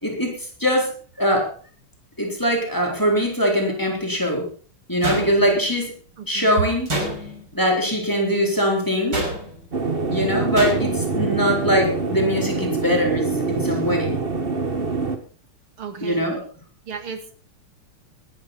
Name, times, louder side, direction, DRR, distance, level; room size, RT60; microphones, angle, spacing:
voice 1, 0.0-1.5 2.2-4.5 4.9-5.9 6.3-6.9 7.5-9.3 10.1-14.2 16.0-16.4, equal, 10° left, 0 dB, 4.2 m, -22 dB
sound 1, 5.0-5.7 6.9-7.5 9.1-9.7 10.6-11.1, right 1 dB, 50° right, 6.2 m, -27 dB
voice 2, 6.2-6.5 15.8-16.5 16.9-17.4, right 6 dB, 75° right, 8 dB, 2.8 m, -35 dB
sound 2, 9.7-15.2, right 4 dB, 30° right, 1.6 m, -25 dB
19.0 x 13.0 x 4.3 m, 0.40 s
omnidirectional pair, 2.4 m